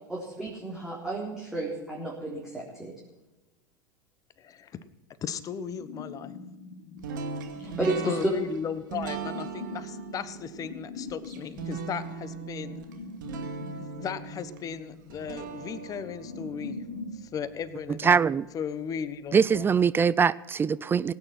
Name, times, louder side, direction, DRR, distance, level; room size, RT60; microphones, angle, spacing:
voice 1, 0.1-2.9 7.6-8.2, right 2 dB, 5° right, 4.0 m, -33 dB
voice 2, 4.4-4.7 5.2-6.3 8.1-12.8 13.8-16.8 17.2-18.2 18.5-19.7, left 7 dB, 35° left, 1.1 m, -36 dB
sound 1, 5.8-17.2, left 3 dB, 60° left, 1.7 m, -43 dB
sound 2, 7.0-18.1, right 6 dB, 70° right, 2.2 m, -40 dB
voice 3, 18.0-18.5 19.3-21.1, right 6 dB, 20° right, 0.4 m, -22 dB
18.0 x 9.4 x 6.0 m
hypercardioid pair, 90°, 11 cm